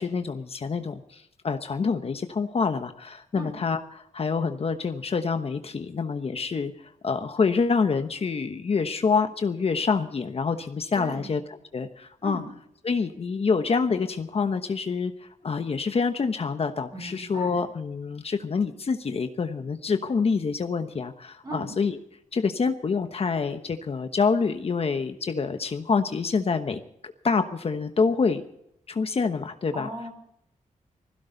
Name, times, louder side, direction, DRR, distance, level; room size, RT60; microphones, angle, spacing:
voice 1, 0.0-3.8 4.1-6.7 7.0-11.4 11.7-12.4 12.8-22.0 22.3-28.4 28.9-29.9, left 5 dB, 50° left, 8 dB, 1.1 m, -26 dB
voice 2, 10.9-11.3 12.2-12.5 16.9-17.6 21.4-21.7 29.7-30.1, right 1 dB, 30° right, 3 dB, 5.1 m, -37 dB
20.5 x 16.0 x 4.0 m, 0.75 s
wide cardioid pair, 105°, 13 cm